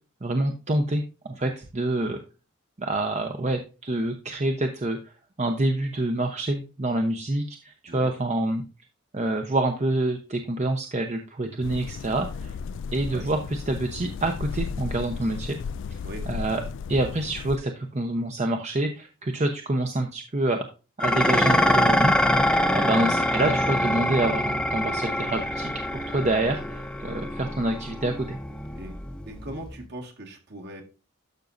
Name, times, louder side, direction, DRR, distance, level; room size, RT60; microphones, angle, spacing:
voice 1, 0.2-2.2 2.8-5.1 5.4-8.6 9.1-12.6 12.9-15.6 15.9-16.0 16.3-16.6 16.9-20.7 21.0-28.4, right 2 dB, 35° right, 4 dB, 0.8 m, -27 dB
sound 1, 11.6-17.6, left 6 dB, 60° left, 0.3 m, -35 dB
Dishes pots and pans, 21.0-29.8, left 1 dB, 5° left, 0.6 m, -25 dB
voice 2, 29.3-30.8, right 1 dB, 55° right, 2 dB, 1.8 m, -39 dB
12.0 x 6.0 x 2.6 m, 0.31 s
head